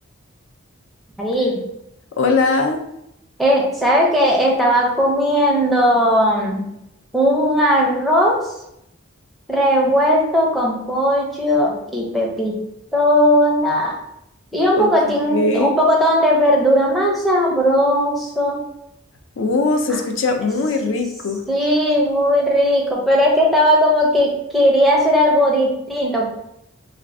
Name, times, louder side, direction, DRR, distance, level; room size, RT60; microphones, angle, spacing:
voice 1, 1.2-1.6 3.4-6.6 7.1-8.4 9.5-12.6 12.9-13.9 14.5-18.6 21.5-26.3, equal, ahead, -3 dB, 0.5 m, -17 dB
voice 2, 2.2-2.8 14.8-14.9 15.3-15.8 19.4-21.4, left 3 dB, 65° left, 4 dB, 0.4 m, -20 dB
2.5 x 2.4 x 3.3 m, 0.80 s
head